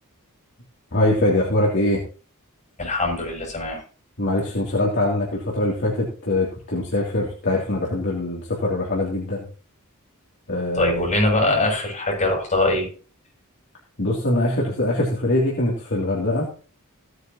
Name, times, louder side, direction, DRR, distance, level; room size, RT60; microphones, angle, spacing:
voice 1, 0.9-2.0 4.2-9.4 10.5-11.1 14.0-16.5, left 1 dB, 55° left, -4 dB, 3.0 m, -23 dB
voice 2, 2.8-3.8 10.8-12.9, left 2 dB, 35° left, -2 dB, 7.8 m, -22 dB
16.5 x 9.7 x 3.0 m, 0.39 s
head